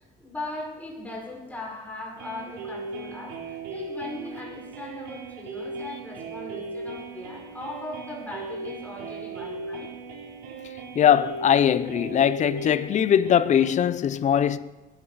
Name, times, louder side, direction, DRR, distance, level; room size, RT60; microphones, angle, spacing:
voice 1, 0.0-9.9, left 2 dB, 10° left, 5.4 m, -38 dB
sound 1, 2.2-13.7, right 3 dB, 85° right, 3.5 m, -38 dB
voice 2, 11.0-14.6, left 9 dB, 45° left, 0.6 m, -21 dB
20.5 x 12.5 x 4.2 m
cardioid pair, 110°, 17 cm